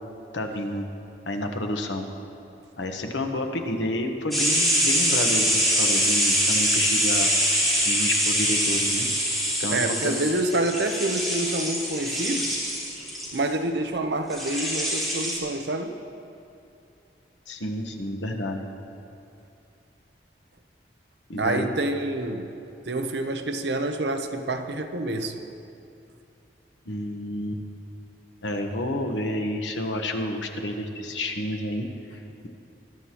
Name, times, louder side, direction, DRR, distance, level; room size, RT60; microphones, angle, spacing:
voice 1, 0.3-0.9 1.3-2.1 2.8-7.3 7.7-9.1 9.6-10.1 17.5-18.7 21.3-21.7 26.8-27.6 28.4-32.5, left 1 dB, 90° left, 4 dB, 1.2 m, -30 dB
sound 1, 4.3-13.4 14.3-15.4, equal, ahead, 2.3 m, -24 dB
voice 2, 9.7-12.6 13.3-16.0 21.4-22.5 22.9-25.4, right 2 dB, 70° right, 6 dB, 0.8 m, -27 dB
19.5 x 11.0 x 3.0 m, 2.7 s
head